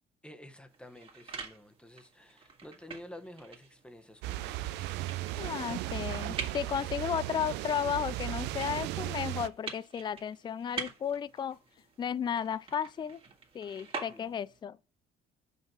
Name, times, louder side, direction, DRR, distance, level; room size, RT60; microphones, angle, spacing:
voice 1, 0.2-4.7 14.0-14.3, left 1 dB, 5° left, 1.1 m, -50 dB
sound 1, 0.7-14.6, right 5 dB, 35° right, 1.8 m, -46 dB
sound 2, 4.2-9.5, right 15 dB, 90° right, 0.5 m, -36 dB
voice 2, 5.4-11.6 12.0-13.2 13.5-14.8, left 8 dB, 25° left, 0.4 m, -34 dB
sound 3, 5.9-7.2 7.6-12.1, left 7 dB, 65° left, 1.7 m, -62 dB
5.5 x 5.5 x 6.1 m
cardioid pair, 110°, 17 cm